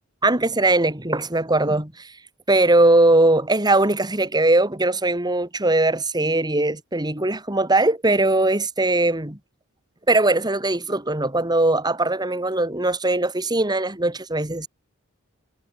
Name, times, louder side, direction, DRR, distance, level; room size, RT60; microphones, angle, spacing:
voice 1, 0.2-2.1 2.5-9.4 10.1-14.7, right 2 dB, 20° right, 2.6 m, -20 dB
head